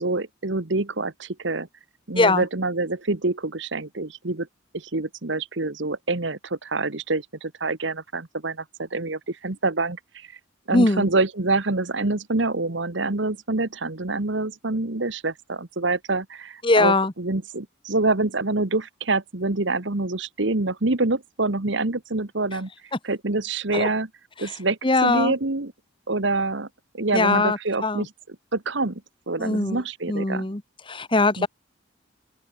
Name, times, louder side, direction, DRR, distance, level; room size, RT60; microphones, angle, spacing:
voice 1, 0.0-1.7 2.1-4.5 4.7-10.3 10.7-22.7 23.0-24.1 24.4-25.7 26.1-26.7 26.9-28.1 28.5-29.0 29.3-30.5 31.4-31.5, right 3 dB, 65° right, 1.4 m, -26 dB
voice 2, 2.1-2.5 10.7-11.1 16.6-17.1 22.9-23.0 23.7-23.9 24.4-24.6 24.8-25.3 27.1-28.1 29.4-29.8 30.1-30.6 30.9-31.5, left 2 dB, 25° left, 1.2 m, -21 dB
open air
head